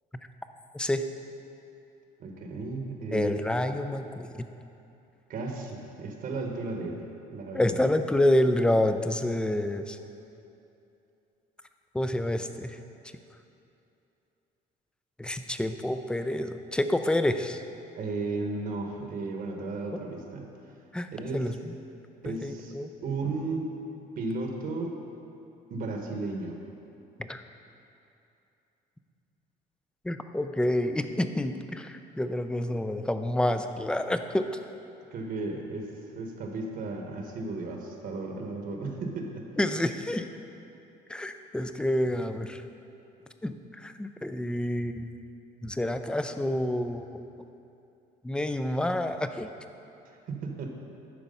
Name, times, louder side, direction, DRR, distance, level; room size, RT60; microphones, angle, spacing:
voice 1, 0.7-1.1 3.1-4.5 7.5-10.0 11.9-12.8 15.2-17.6 20.9-21.7 22.2-22.9 27.2-27.4 30.0-34.5 39.6-40.3 41.1-42.6 43.4-45.1 45.6-47.2 48.2-49.5, left 1 dB, 5° left, 8 dB, 0.4 m, -28 dB
voice 2, 2.2-3.4 5.3-7.0 7.3-7.8 17.9-20.5 21.1-21.5 22.2-22.7 23.0-23.7 24.2-25.0 25.7-26.6 35.1-39.5 50.0-50.8, right 3 dB, 55° right, 2 dB, 1.1 m, -34 dB
11.0 x 4.6 x 5.4 m, 2.8 s
cardioid pair, 110°, 17 cm